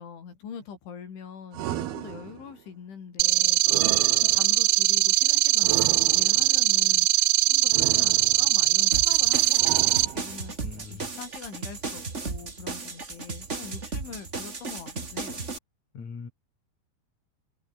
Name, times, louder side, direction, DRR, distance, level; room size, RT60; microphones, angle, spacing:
voice 1, 0.0-9.8 10.1-15.5, left 7 dB, 85° left, 7.3 m, -44 dB
sound 1, 1.5-2.6 3.7-4.7 5.6-6.6 7.7-8.6 9.6-10.5, right 12 dB, 65° right, 3.2 m, -35 dB
sound 2, 3.2-10.1, right 20 dB, 85° right, 2.3 m, -21 dB
sound 3, 8.9-15.6, right 4 dB, 25° right, 1.5 m, -35 dB
voice 2, 10.6-11.1 15.9-16.3, left 5 dB, 40° left, 5.4 m, -41 dB
omnidirectional pair, 5.3 m